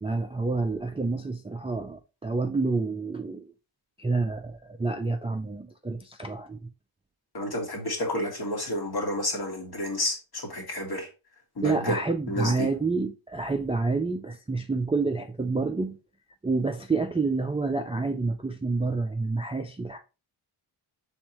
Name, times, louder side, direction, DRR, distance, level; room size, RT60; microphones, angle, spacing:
voice 1, 0.0-3.5 4.0-6.7 11.6-16.0 16.4-20.0, right 3 dB, 15° right, 0.3 m, -28 dB
voice 2, 7.3-11.1 11.6-12.0 12.3-12.7, left 1 dB, 50° left, 1.7 m, -30 dB
4.5 x 3.6 x 2.9 m
cardioid pair, 75°, 48 cm